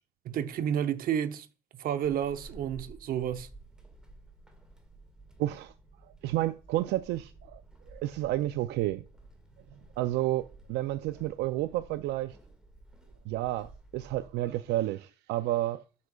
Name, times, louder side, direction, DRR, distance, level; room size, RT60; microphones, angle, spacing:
voice 1, 0.2-1.5 1.7-3.5, right 9 dB, 60° right, 0.7 m, -30 dB
Walk footsteps / Squeak, 2.0-14.7, right 2 dB, 5° right, 1.7 m, -53 dB
voice 2, 5.4-5.7 6.2-7.6 7.9-9.0 10.0-12.4 13.3-15.8, right 15 dB, 85° right, 0.4 m, -31 dB
8.3 x 6.2 x 2.3 m
cardioid pair, 110°, 17 cm